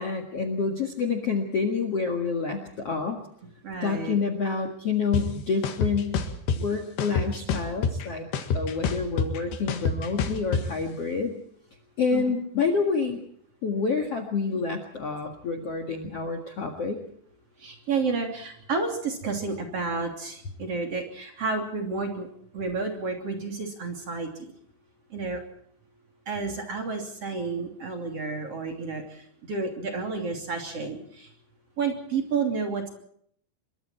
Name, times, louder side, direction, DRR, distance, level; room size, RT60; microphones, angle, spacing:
voice 1, 0.0-3.2 3.8-6.1 6.5-8.3 8.5-11.3 12.0-13.2 13.6-17.0, left 5 dB, 50° left, 7 dB, 2.1 m, -28 dB
voice 2, 3.6-4.2 12.1-12.3 17.6-22.3 22.5-24.5 25.1-25.4 26.3-31.3 31.8-32.9, right 4 dB, 40° right, 3 dB, 3.5 m, -31 dB
sound 1, 5.1-5.2 5.6-6.6 7.0-8.1 8.3-10.6, left 6 dB, 75° left, 3.9 m, -26 dB
26.0 x 22.5 x 4.4 m, 0.66 s
omnidirectional pair, 5.0 m